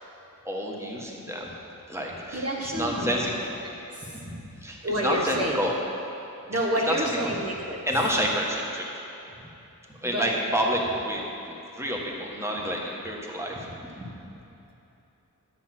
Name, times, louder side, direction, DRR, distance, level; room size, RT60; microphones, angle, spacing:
voice 1, 0.4-1.5 1.9-3.3 4.1-5.7 6.5-7.3 7.8-9.0 9.4-9.5 9.9-14.1, equal, 5° right, -2 dB, 1.5 m, -29 dB
voice 2, 2.3-3.2 3.9-4.2 4.8-5.6 6.5-7.8 10.1-10.3, equal, 45° right, -2 dB, 1.2 m, -28 dB
9.8 x 7.6 x 6.0 m, 2.9 s
wide cardioid pair, 55°, 35 cm